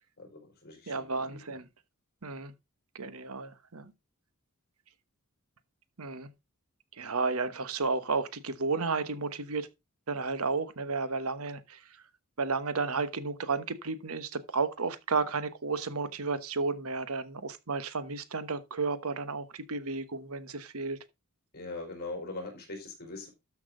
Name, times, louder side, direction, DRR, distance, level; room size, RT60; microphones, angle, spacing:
voice 1, 0.2-1.4 21.5-23.3, left 2 dB, 45° left, 5.1 m, -41 dB
voice 2, 0.9-1.6 2.2-2.5 2.9-3.9 6.0-6.3 7.0-9.7 10.1-11.8 12.4-21.0, right 4 dB, 70° right, 1.1 m, -32 dB
13.0 x 6.0 x 3.8 m
head